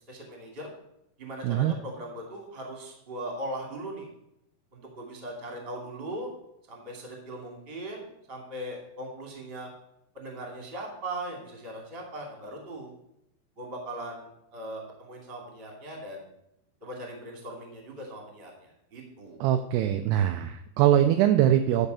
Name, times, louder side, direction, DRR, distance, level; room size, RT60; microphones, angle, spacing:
voice 1, 0.1-0.7 1.2-4.1 4.7-6.3 6.7-9.7 10.1-12.9 13.6-16.3 16.8-19.5, right 1 dB, 20° right, 0 dB, 1.7 m, -39 dB
voice 2, 1.4-1.8 19.4-21.9, right 11 dB, 85° right, 7 dB, 2.3 m, -22 dB
11.0 x 4.9 x 6.8 m, 0.79 s
omnidirectional pair, 5.2 m